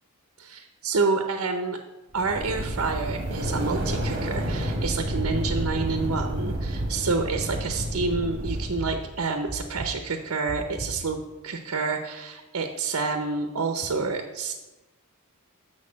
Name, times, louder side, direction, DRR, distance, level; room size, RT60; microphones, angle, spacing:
voice 1, 0.4-1.8 2.1-14.5, right 4 dB, 75° right, 5 dB, 0.7 m, -28 dB
sound 1, 2.1-9.1, right 1 dB, 55° right, 1.4 m, -30 dB
sound 2, 4.5-4.9 5.5-5.9 6.5-6.9 7.5-7.9 8.5-8.9 9.5-9.9 10.5-10.9, right 2 dB, 35° right, 1.6 m, -35 dB
6.4 x 6.4 x 7.3 m, 1.1 s
head